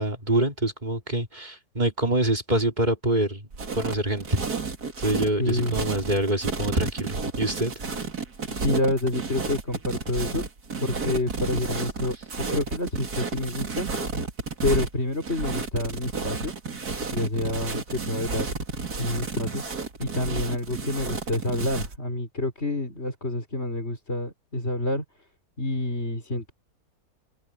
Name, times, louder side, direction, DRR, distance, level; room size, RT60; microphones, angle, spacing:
voice 1, 0.0-3.4 3.7-4.4 5.0-7.8, right 1 dB, 30° right, 3.4 m, -25 dB
sound 1, 3.5-22.0, right 4 dB, 80° right, 3.2 m, -32 dB
voice 2, 5.4-5.8 8.5-10.5 10.8-13.9 14.6-16.5 17.1-18.4 19.0-19.6 20.0-25.0 25.6-26.5, left 1 dB, 40° left, 5.2 m, -28 dB
omnidirectional pair, 1.6 m